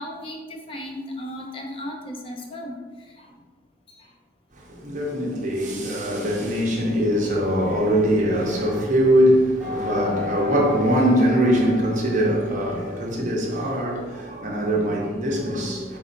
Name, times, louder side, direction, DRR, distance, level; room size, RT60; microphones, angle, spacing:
voice 1, 0.0-3.4 3.9-4.1, left 1 dB, 30° left, 0.5 m, -36 dB
voice 2, 4.5-16.0, equal, 40° right, 0.8 m, -22 dB
sound 1, 9.6-15.0, left 5 dB, 10° right, 0.8 m, -35 dB
4.0 x 3.7 x 2.5 m
head